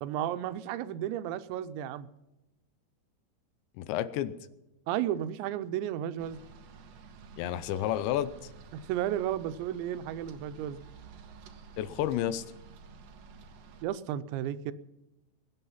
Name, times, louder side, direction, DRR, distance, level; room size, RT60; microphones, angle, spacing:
voice 1, 0.0-2.1 4.9-6.4 8.7-10.8 13.8-14.7, right 11 dB, 90° right, 13 dB, 3.0 m, -33 dB
voice 2, 3.8-4.3 7.4-8.3 11.8-12.4, left 12 dB, 85° left, 15 dB, 3.0 m, -30 dB
sound 1, 6.2-13.8, right 5 dB, 65° right, 2.3 m, -51 dB
22.5 x 9.1 x 5.7 m, 0.97 s
omnidirectional pair, 5.0 m